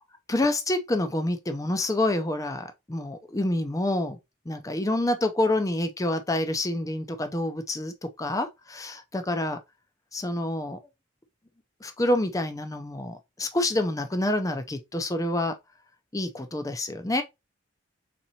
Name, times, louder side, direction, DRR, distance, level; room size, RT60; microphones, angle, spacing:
voice 1, 0.3-4.2 4.5-9.6 10.1-10.8 11.8-15.6 16.1-17.2, left 1 dB, 15° left, 0.5 m, -27 dB
4.3 x 3.8 x 2.8 m
head